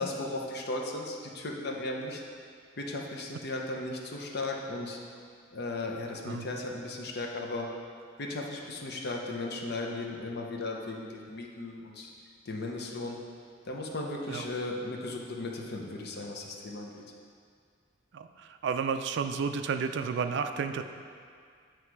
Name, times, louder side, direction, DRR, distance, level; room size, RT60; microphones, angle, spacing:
voice 1, 0.0-2.2 2.8-5.0 5.5-7.7 8.2-12.1 12.4-13.2 13.6-17.0, left 2 dB, 55° left, 0 dB, 0.7 m, -36 dB
voice 2, 18.1-20.8, right 6 dB, 60° right, 8 dB, 0.3 m, -31 dB
7.8 x 3.1 x 4.6 m, 2.1 s
head